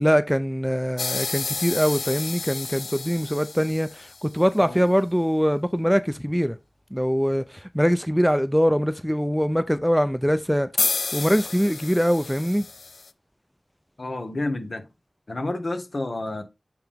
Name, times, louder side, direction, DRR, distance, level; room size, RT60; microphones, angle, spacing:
voice 1, 0.0-6.6 6.9-10.7 11.1-12.6, equal, ahead, 0.5 m, -23 dB
sound 1, 1.0-4.4 10.8-13.1, left 4 dB, 85° left, 0.4 m, -30 dB
voice 2, 14.0-14.8 15.3-16.4, left 2 dB, 60° left, 1.3 m, -30 dB
8.1 x 3.5 x 3.5 m
cardioid pair, 45°, 0 cm